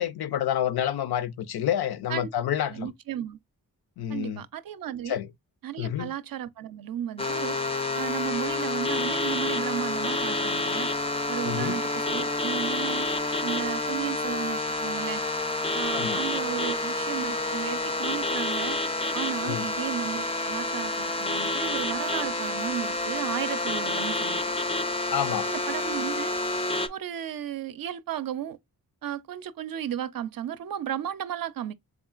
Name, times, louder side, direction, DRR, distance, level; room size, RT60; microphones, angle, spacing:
voice 1, 0.0-2.9 4.0-4.4 5.1-5.3 5.8-6.1 11.4-11.8 15.9-16.2 19.4-19.7 25.1-25.5, left 10 dB, 80° left, 0.5 m, -28 dB
voice 2, 2.7-3.4 4.1-5.2 5.6-7.6 7.9-10.9 11.3-13.1 13.4-15.2 15.7-18.8 19.1-24.4 25.4-26.3 26.9-28.6 29.0-31.7, right 10 dB, 65° right, 0.5 m, -34 dB
sound 1, 7.2-26.9, left 2 dB, 15° left, 0.4 m, -29 dB
3.7 x 3.6 x 2.3 m
cardioid pair, 85°, 37 cm